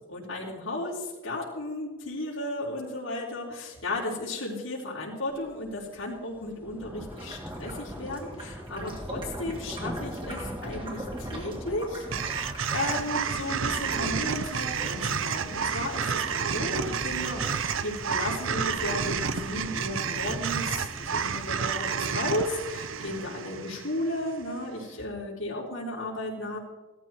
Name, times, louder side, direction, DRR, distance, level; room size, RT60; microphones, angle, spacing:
voice 1, 0.1-26.6, left 1 dB, 80° left, -6 dB, 4.1 m, -34 dB
sound 1, 5.5-5.7 6.0-23.3, equal, 10° right, 1.5 m, -41 dB
sound 2, 7.1-13.1, right 1 dB, 25° right, 2.8 m, -43 dB
sound 3, 12.1-24.4, right 6 dB, 70° right, 0.8 m, -30 dB
18.0 x 13.5 x 4.5 m, 1.1 s
head